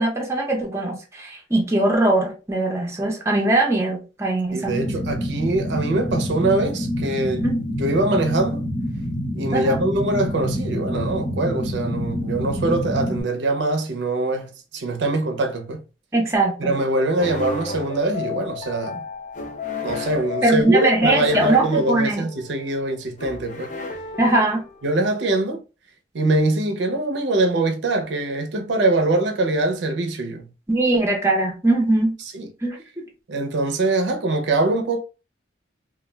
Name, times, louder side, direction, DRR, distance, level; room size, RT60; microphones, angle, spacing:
voice 1, 0.0-4.7 7.4-7.6 9.5-9.8 16.1-16.7 20.4-22.3 24.2-24.6 30.7-32.1 32.6-33.1, right 2 dB, 15° right, 0.6 m, -21 dB
voice 2, 4.5-7.5 7.8-8.6 9.3-15.8 16.6-19.0 19.8-23.7 24.8-25.6 26.1-30.5 32.3-32.5 33.3-35.0, right 2 dB, 75° right, 0.5 m, -23 dB
sound 1, 4.7-13.2, equal, 65° left, 1.2 m, -27 dB
sound 2, 17.2-24.9, left 3 dB, 45° left, 0.4 m, -32 dB
2.3 x 2.1 x 3.1 m
head